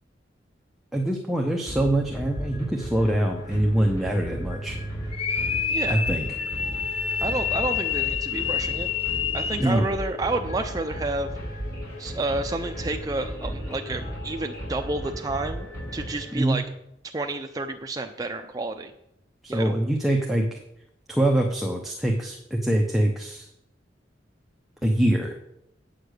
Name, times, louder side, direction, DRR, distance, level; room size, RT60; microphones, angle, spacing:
voice 1, 0.9-4.8 5.9-6.3 9.6-9.9 16.3-16.6 19.4-20.6 21.1-23.5 24.8-25.4, right 1 dB, ahead, 0 dB, 0.9 m, -24 dB
sound 1, 1.6-16.7, equal, 15° left, 4.8 m, -35 dB
sound 2, 5.1-9.8, left 7 dB, 35° left, 0.5 m, -28 dB
voice 2, 5.7-6.0 7.2-8.9 9.3-11.3 12.0-15.7 15.9-16.6 17.0-18.9 19.5-19.7, right 2 dB, 20° right, 4 dB, 0.5 m, -30 dB
sound 3, 11.2-15.9, left 1 dB, 65° left, 4.5 m, -48 dB
8.5 x 6.7 x 6.5 m, 0.80 s
head